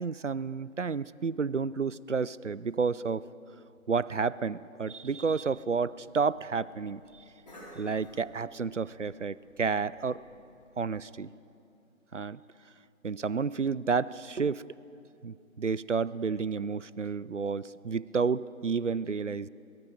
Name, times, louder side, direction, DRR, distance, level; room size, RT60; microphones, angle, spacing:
voice 1, 0.0-3.2 3.9-7.0 7.8-10.2 10.8-11.3 12.1-12.4 13.0-14.6 15.2-19.5, right 5 dB, 60° right, 19 dB, 0.5 m, -30 dB
Cough, 5.4-10.8, equal, 30° left, 4.2 m, -55 dB
28.5 x 20.0 x 5.1 m, 2.6 s
figure-of-eight pair, 175°, 42 cm